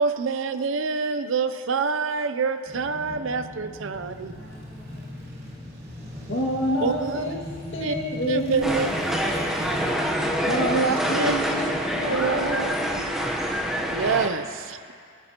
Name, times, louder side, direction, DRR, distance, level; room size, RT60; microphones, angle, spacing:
voice 1, 0.0-4.3 6.8-7.3 7.8-8.0 8.3-8.9 10.7-11.3 12.1-12.7 13.9-14.9, right 5 dB, 70° right, 10 dB, 0.5 m, -26 dB
sound 1, 2.7-10.8, left 1 dB, 20° right, 1.2 m, -40 dB
voice 2, 3.9-5.7 7.8-8.0 12.0-13.0, left 2 dB, 50° left, -8 dB, 3.5 m, -46 dB
sound 2, 3.9-9.9, equal, 50° right, 2.7 m, -43 dB
voice 3, 6.2-7.4 7.7-8.8 10.3-13.1, equal, 65° left, -2 dB, 2.0 m, -28 dB
sound 3, 8.6-14.3, equal, ahead, 0.9 m, -26 dB
23.5 x 11.5 x 2.9 m, 2.2 s
head